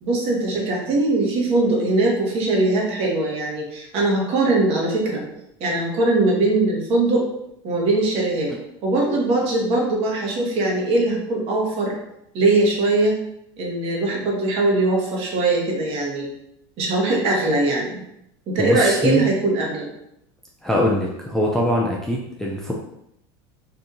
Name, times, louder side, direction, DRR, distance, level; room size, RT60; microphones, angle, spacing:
voice 1, 0.0-5.2 5.6-7.3 7.6-8.5 8.8-11.9 12.3-13.1 13.6-16.3 16.8-18.0 18.5-19.9, right 2 dB, 50° right, -2 dB, 1.2 m, -21 dB
voice 2, 18.6-19.3 20.6-22.7, left 1 dB, 5° left, -3 dB, 0.4 m, -22 dB
2.8 x 2.7 x 3.7 m, 0.79 s
supercardioid pair, 140°, 13 cm